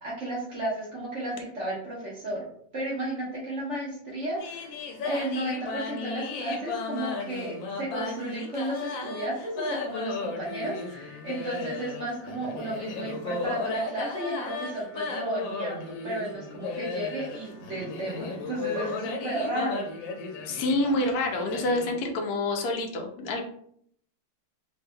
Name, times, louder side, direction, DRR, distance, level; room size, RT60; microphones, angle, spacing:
voice 1, 0.0-2.4 2.7-4.7 5.0-19.9, right 1 dB, 45° right, -6 dB, 1.1 m, -33 dB
sound 1, 4.4-21.9, left 4 dB, 90° left, 1.4 m, -35 dB
voice 2, 20.4-23.4, left 2 dB, 65° left, 2 dB, 1.0 m, -27 dB
3.4 x 3.2 x 2.2 m, 0.65 s
omnidirectional pair, 2.1 m